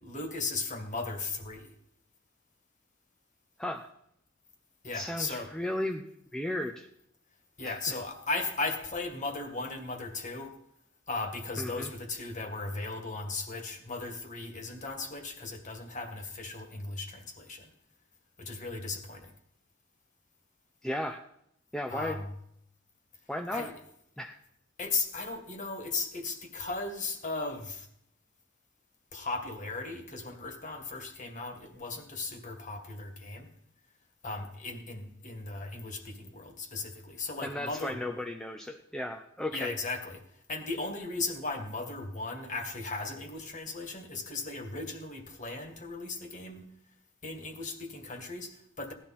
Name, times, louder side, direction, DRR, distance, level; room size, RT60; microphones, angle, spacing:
voice 1, 0.0-1.7 4.8-5.5 7.6-10.5 11.1-17.7 18.4-19.3 21.9-22.3 23.5-23.7 24.8-27.9 29.1-33.5 34.2-38.0 39.5-40.2 40.5-46.7 47.2-48.9, left 3 dB, 40° left, 5 dB, 2.0 m, -37 dB
voice 2, 4.9-6.0 6.3-6.9 7.6-8.0 11.6-11.9 20.8-21.2 21.7-22.2 23.3-23.7 24.2-24.3 37.4-39.8, left 1 dB, 5° left, 2 dB, 0.7 m, -35 dB
17.0 x 12.0 x 4.3 m, 0.73 s
head